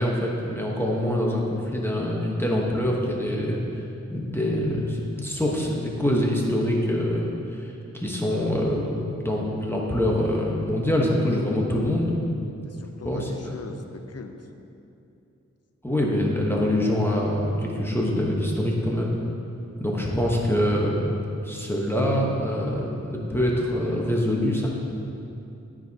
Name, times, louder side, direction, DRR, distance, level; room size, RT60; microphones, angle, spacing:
voice 1, 0.0-3.6 4.1-12.1 13.0-13.3 15.8-19.1 19.8-21.1 21.4-24.7, left 1 dB, 10° left, -3 dB, 1.2 m, -25 dB
voice 2, 12.7-14.5 19.9-20.2, left 4 dB, 60° left, 6 dB, 0.7 m, -41 dB
13.0 x 4.9 x 2.9 m, 2.7 s
cardioid pair, 50°, 29 cm